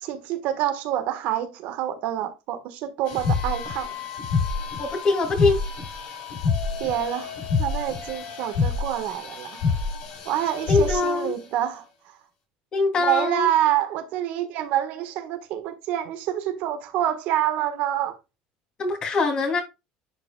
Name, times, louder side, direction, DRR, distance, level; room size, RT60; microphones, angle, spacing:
voice 1, 0.0-4.0 6.8-7.3 7.6-9.6 10.2-12.2 13.0-18.2, right 11 dB, 70° right, 1.5 m, -27 dB
sound 1, 3.0-11.3, left 4 dB, 65° left, 4.7 m, -28 dB
voice 2, 4.8-5.6 10.7-11.3 12.7-13.5 18.8-19.6, left 3 dB, 35° left, 3.1 m, -23 dB
11.0 x 5.0 x 2.3 m
cardioid pair, 125°, 3 cm